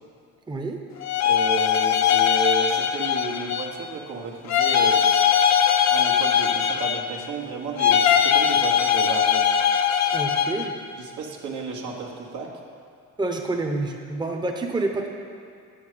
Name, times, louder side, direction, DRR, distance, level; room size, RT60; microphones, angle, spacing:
voice 1, 0.5-0.8 10.1-10.7 13.2-15.1, right 2 dB, 15° right, 2 dB, 0.8 m, -28 dB
sound 1, 1.0-3.8 4.5-7.3 7.8-10.7, left 8 dB, 65° left, 0.6 m, -21 dB
voice 2, 1.2-5.0 5.9-9.5 11.0-12.5, right 4 dB, 75° right, -1 dB, 1.4 m, -33 dB
8.7 x 6.4 x 5.1 m, 2.2 s
cardioid pair, 90°, 30 cm